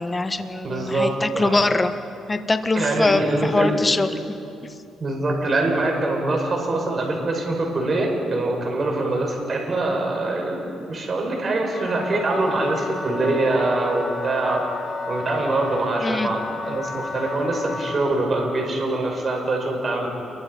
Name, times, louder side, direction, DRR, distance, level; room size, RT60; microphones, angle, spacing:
voice 1, 0.0-2.0 2.3-4.1 16.0-16.3, left 2 dB, 20° left, 8 dB, 1.4 m, -22 dB
voice 2, 0.6-1.6 2.7-3.8 5.0-14.6 15.1-20.1, right 2 dB, 40° right, 0 dB, 5.7 m, -24 dB
Wind instrument woodwind instrument, 11.7-18.2, left 3 dB, 35° left, 4.1 m, -31 dB
29.5 x 23.5 x 5.5 m, 2.5 s
cardioid pair, 90°, 0 cm